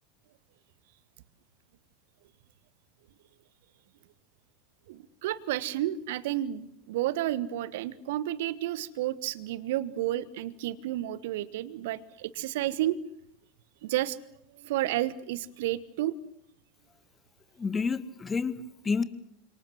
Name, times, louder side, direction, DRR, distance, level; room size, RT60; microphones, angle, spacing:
voice 1, 4.9-13.0 13.8-14.2 14.5-16.1, right 14 dB, 60° right, 17 dB, 1.3 m, -31 dB
voice 2, 17.6-19.0, left 5 dB, 20° left, 13 dB, 1.9 m, -29 dB
29.5 x 26.5 x 6.3 m, 0.75 s
figure-of-eight pair, 80°, 0 cm